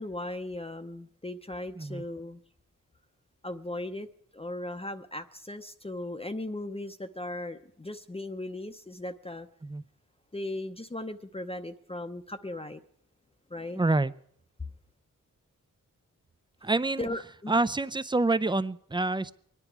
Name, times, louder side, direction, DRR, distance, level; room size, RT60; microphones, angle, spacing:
voice 1, 0.0-2.4 3.4-4.1 4.3-9.5 10.3-12.8 13.5-13.8 17.0-17.6, left 1 dB, 15° left, 7 dB, 0.8 m, -37 dB
voice 2, 13.8-14.1 16.6-17.1 17.5-19.3, right 2 dB, 15° right, 14 dB, 0.5 m, -27 dB
24.0 x 10.0 x 4.7 m, 0.69 s
cardioid pair, 70°, 33 cm